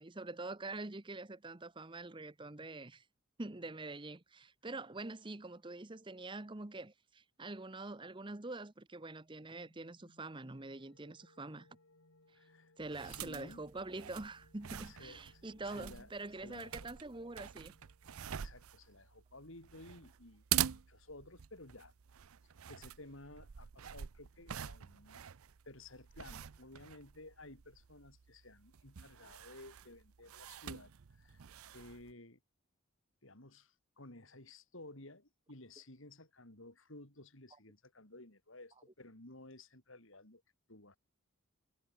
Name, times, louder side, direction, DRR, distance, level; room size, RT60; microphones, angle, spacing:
voice 1, 0.0-3.0 3.4-11.7 12.8-17.7, right 2 dB, 20° right, 0.8 m, -45 dB
sound 1, 9.5-18.4, left 1 dB, 80° left, 4.1 m, -69 dB
voice 2, 12.3-12.7 13.0-13.7 14.8-16.1 16.4-17.0 18.3-21.9 22.7-25.2 25.7-31.5 31.7-32.4 33.2-40.4 40.7-41.0, left 2 dB, 60° left, 3.9 m, -55 dB
sound 2, 12.8-32.1, right 10 dB, 80° right, 0.6 m, -45 dB
head